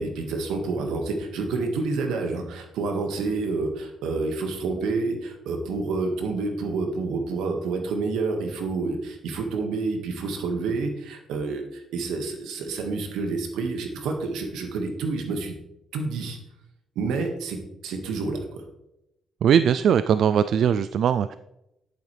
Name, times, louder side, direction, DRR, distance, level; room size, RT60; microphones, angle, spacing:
voice 1, 0.0-15.6 15.9-16.4 17.0-18.6, right 3 dB, 90° right, 4 dB, 1.8 m, -28 dB
voice 2, 19.4-21.4, right 8 dB, 65° right, 13 dB, 0.3 m, -20 dB
11.0 x 9.1 x 3.4 m, 0.86 s
cardioid pair, 90°, 0 cm